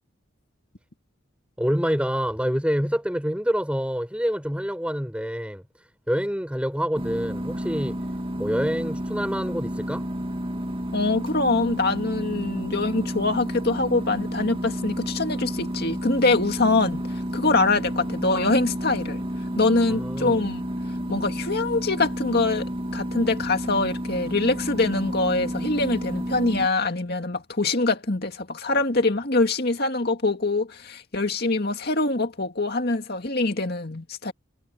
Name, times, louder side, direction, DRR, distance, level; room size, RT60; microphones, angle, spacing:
voice 1, 1.6-8.0 8.4-10.1 19.9-20.4, equal, 5° right, 7.3 m, -27 dB
sound 1, 6.9-26.7, equal, 25° right, 2.1 m, -31 dB
voice 2, 10.9-17.1 17.3-19.2 19.6-20.6 21.1-34.3, left 3 dB, 50° left, 2.2 m, -24 dB
head